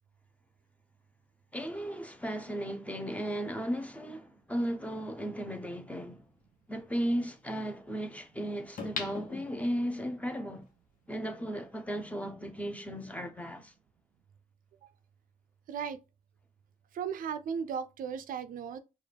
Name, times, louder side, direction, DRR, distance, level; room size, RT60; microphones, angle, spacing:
voice 1, 1.5-6.2 6.7-10.7 11.1-13.7, equal, 10° left, 0.9 m, -35 dB
sound 1, 5.2-5.3 8.8-10.1 10.6-10.7, left 4 dB, 80° left, 1.0 m, -39 dB
voice 2, 15.7-16.0 16.9-18.8, right 7 dB, 80° right, 0.4 m, -36 dB
4.8 x 2.5 x 3.4 m
cardioid pair, 75°, 14 cm